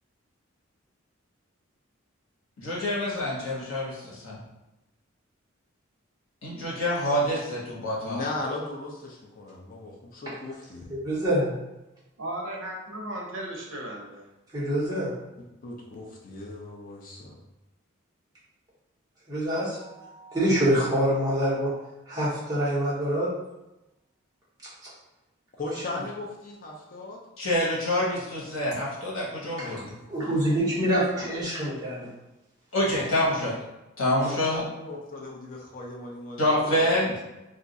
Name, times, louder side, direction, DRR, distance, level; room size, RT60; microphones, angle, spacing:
voice 1, 2.6-4.4 6.4-8.2 27.4-29.8 32.7-33.5 34.0-34.7 36.4-37.2, left 1 dB, 80° left, -5 dB, 1.1 m, -26 dB
voice 2, 8.0-10.9 15.6-17.4 25.6-27.2 34.7-37.2, left 2 dB, 40° left, -2 dB, 0.5 m, -37 dB
voice 3, 11.0-11.5 14.5-15.1 19.3-21.7 22.1-23.3 29.6-29.7 30.1-32.1, equal, 20° right, -8 dB, 1.0 m, -25 dB
voice 4, 12.2-14.3, right 1 dB, 70° right, -1 dB, 0.7 m, -36 dB
2.5 x 2.3 x 3.9 m, 0.98 s
head